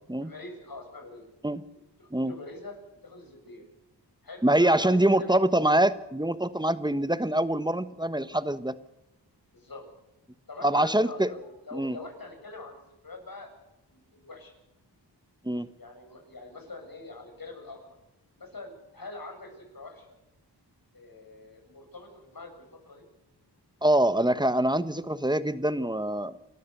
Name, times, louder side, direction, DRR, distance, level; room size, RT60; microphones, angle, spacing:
voice 1, 0.2-1.3 2.0-3.6 4.2-5.4 9.5-9.8 10.5-13.5 13.9-14.5 15.8-18.0 18.4-20.2 20.9-23.0, left 2 dB, 55° left, 3 dB, 7.6 m, -44 dB
voice 2, 4.4-8.8 10.6-11.3 11.7-12.0 15.4-15.7 23.8-26.3, right 1 dB, 10° right, 14 dB, 1.2 m, -24 dB
29.0 x 13.5 x 6.8 m, 0.93 s
cardioid pair, 55°, 41 cm